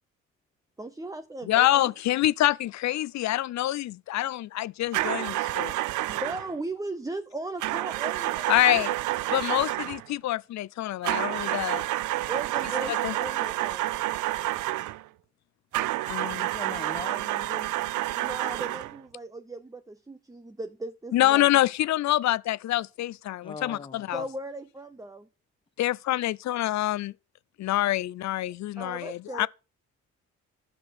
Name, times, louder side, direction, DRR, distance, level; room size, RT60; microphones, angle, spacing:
voice 1, 0.8-1.9 6.1-8.9 12.2-13.9 18.1-21.5 24.1-25.3 28.8-29.5, right 2 dB, 10° right, 0.7 m, -37 dB
voice 2, 1.5-5.7 8.5-8.9 9.3-11.9 13.0-13.1 16.1-16.5 21.1-24.2 25.8-27.1 27.6-29.5, left 14 dB, 65° left, 0.5 m, -26 dB
sound 1, 4.9-6.5 7.6-10.1 11.0-15.0 15.7-19.0, right 16 dB, 80° right, 0.5 m, -29 dB
voice 3, 16.3-17.7 23.4-24.1, left 4 dB, 15° left, 1.2 m, -40 dB
11.5 x 6.1 x 6.3 m
cardioid pair, 90°, 30 cm